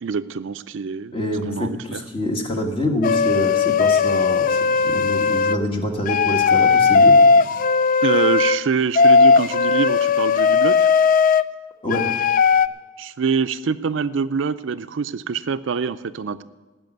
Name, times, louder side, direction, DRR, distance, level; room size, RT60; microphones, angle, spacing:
voice 1, 0.0-1.1 1.5-2.0 8.0-10.9 13.0-16.4, right 5 dB, 75° right, 12 dB, 0.5 m, -25 dB
voice 2, 1.1-7.2 11.8-12.1, left 1 dB, 30° left, 3 dB, 1.7 m, -26 dB
sound 1, 3.0-5.6 6.1-8.6 8.9-11.4 11.9-12.7, left 5 dB, 45° left, 0.3 m, -17 dB
16.0 x 6.3 x 9.2 m, 1.3 s
head